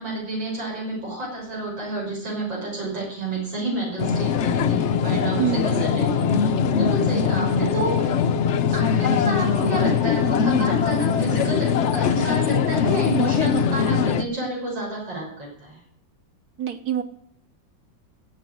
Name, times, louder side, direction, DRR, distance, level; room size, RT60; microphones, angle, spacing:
voice 1, 0.0-8.3 8.7-15.8, right 2 dB, 75° right, -4 dB, 6.9 m, -30 dB
sound 1, 4.0-14.2, left 7 dB, 85° left, 0.6 m, -21 dB
voice 2, 5.4-5.8 16.6-17.0, right 9 dB, 55° right, 9 dB, 1.6 m, -25 dB
15.5 x 6.8 x 9.3 m, 0.67 s
omnidirectional pair, 2.0 m